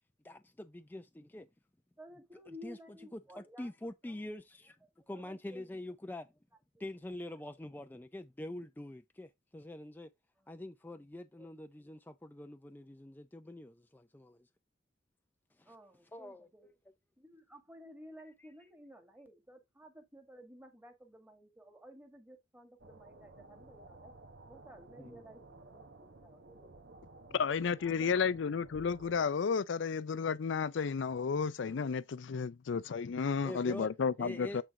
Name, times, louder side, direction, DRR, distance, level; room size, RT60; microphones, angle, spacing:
voice 1, 0.2-1.5 2.6-4.8 5.1-6.3 6.8-10.1 10.5-14.5 15.6-15.7 16.1-16.5 25.0-25.2 27.3-27.4 33.4-33.9 34.2-34.6, left 1 dB, 10° left, 0.4 m, -45 dB
voice 2, 2.0-3.7 4.1-4.2 5.0-5.7 10.4-10.6 11.4-11.5 15.7-16.7 17.2-24.1 24.5-26.7 27.5-28.2, equal, 10° right, 1.9 m, -55 dB
sound 1, 22.8-29.2, right 2 dB, 65° right, 1.2 m, -55 dB
voice 3, 27.3-34.6, left 6 dB, 70° left, 0.4 m, -32 dB
8.6 x 4.4 x 3.6 m
head